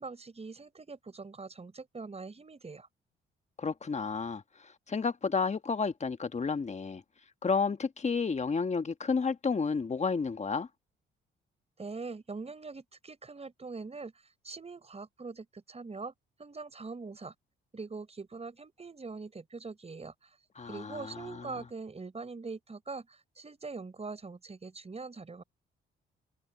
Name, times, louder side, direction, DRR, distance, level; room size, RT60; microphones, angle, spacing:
voice 1, 0.0-2.9 11.8-14.1 14.4-16.1 16.4-17.3 17.7-20.4 20.7-25.4, right 4 dB, 30° right, 5.3 m, -43 dB
voice 2, 3.6-7.0 7.4-10.7 20.6-21.6, left 5 dB, 35° left, 1.5 m, -31 dB
supercardioid pair, 65°, 21 cm